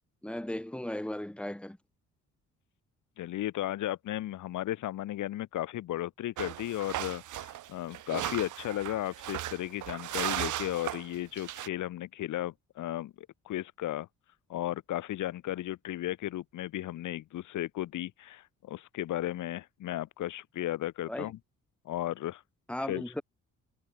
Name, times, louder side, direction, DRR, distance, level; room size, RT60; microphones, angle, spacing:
voice 1, 0.2-1.8 21.1-21.3 22.7-23.2, left 1 dB, 5° left, 2.4 m, -36 dB
voice 2, 3.2-14.1 14.5-21.4 21.9-22.4 22.9-23.0, left 14 dB, 80° left, 2.4 m, -35 dB
sound 1, 6.4-11.7, right 14 dB, 80° right, 2.1 m, -36 dB
cardioid pair, 90°, 30 cm